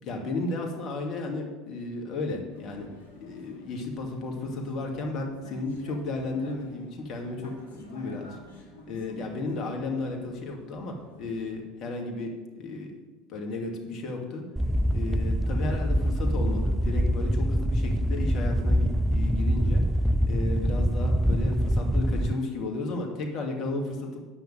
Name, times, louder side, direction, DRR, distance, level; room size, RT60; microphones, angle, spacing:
voice 1, 0.0-2.9 3.1-8.4 8.9-12.9 13.3-14.4 14.9-19.8 20.2-24.2, left 2 dB, 50° left, 2 dB, 2.3 m, -33 dB
Vehicle, 2.5-11.6, left 1 dB, 85° left, 1.9 m, -50 dB
sound 1, 14.6-22.3, equal, 5° right, 0.4 m, -25 dB
9.9 x 5.9 x 7.6 m, 1.3 s
hypercardioid pair, 80°, 0 cm